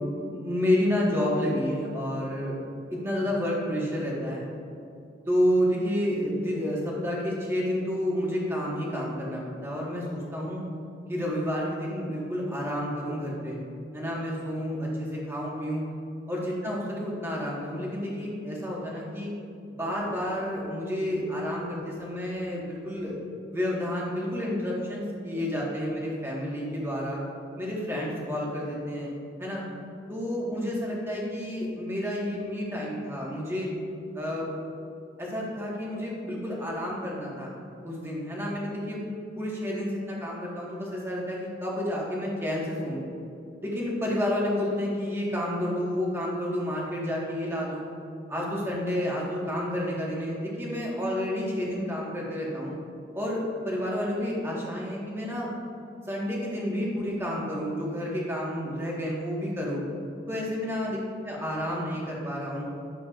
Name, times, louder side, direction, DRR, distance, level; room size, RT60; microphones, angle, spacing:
voice 1, 0.3-4.4 5.3-10.6 11.1-13.6 13.9-15.9 16.3-19.3 19.8-23.1 23.5-27.2 27.6-29.1 29.4-29.6 30.1-33.7 34.1-34.5 35.2-37.5 37.8-39.0 39.3-43.0 43.6-47.9 48.3-52.8 53.1-55.5 56.1-59.8 60.3-61.0 61.2-62.6, equal, 15° right, -4 dB, 1.5 m, -30 dB
10.0 x 7.1 x 2.5 m, 2.5 s
head